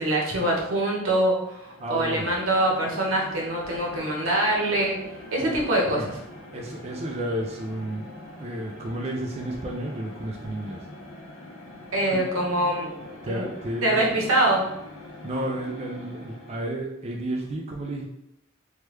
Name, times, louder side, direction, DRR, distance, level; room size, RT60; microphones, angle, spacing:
voice 1, 0.0-5.0 5.3-6.0 11.9-12.9 13.3-13.5 13.8-14.6, right 1 dB, 85° right, -2 dB, 0.9 m, -24 dB
sound 1, 1.6-16.9, left 1 dB, 70° left, 0.6 m, -43 dB
voice 2, 1.8-2.3 5.4-5.6 5.9-6.1 6.5-8.1 8.4-10.9 12.1-12.3 13.2-14.1 15.2-18.1, right 1 dB, 30° right, 0 dB, 0.3 m, -32 dB
3.2 x 2.2 x 3.1 m, 0.83 s
head